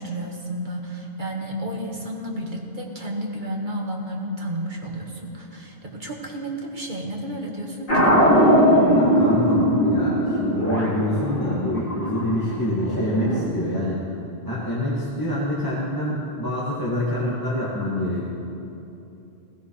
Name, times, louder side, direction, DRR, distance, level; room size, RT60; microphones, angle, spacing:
voice 1, 0.0-8.1, right 1 dB, 50° right, -1 dB, 1.6 m, -31 dB
sound 1, 7.9-13.5, equal, 55° left, 3.0 m, -20 dB
voice 2, 8.9-14.0 14.5-18.3, left 1 dB, 20° left, -8 dB, 1.9 m, -26 dB
16.5 x 16.0 x 3.2 m, 2.8 s
omnidirectional pair, 1.1 m